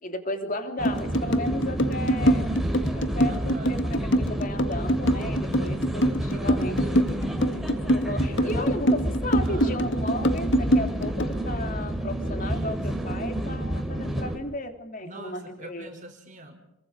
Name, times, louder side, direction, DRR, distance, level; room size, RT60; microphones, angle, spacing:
voice 1, 0.0-2.5 2.9-7.1 7.8-15.9, left 1 dB, 40° left, 6 dB, 3.1 m, -34 dB
sound 1, 0.8-11.4, equal, 60° left, 2.0 m, -24 dB
sound 2, 0.8-14.4, right 1 dB, ahead, 3.8 m, -29 dB
voice 2, 3.2-3.9 6.0-6.8 8.1-8.5 9.4-10.0 12.4-13.0 15.0-16.6, right 1 dB, 35° right, 1 dB, 4.3 m, -43 dB
28.5 x 24.0 x 5.0 m, 0.83 s
head